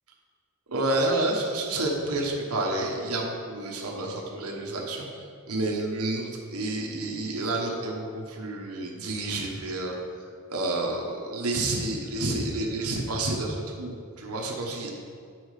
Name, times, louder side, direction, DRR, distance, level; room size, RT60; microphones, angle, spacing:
voice 1, 0.7-10.2 10.5-14.9, right 2 dB, 80° right, 0 dB, 1.3 m, -29 dB
9.7 x 6.2 x 4.9 m, 2.2 s
head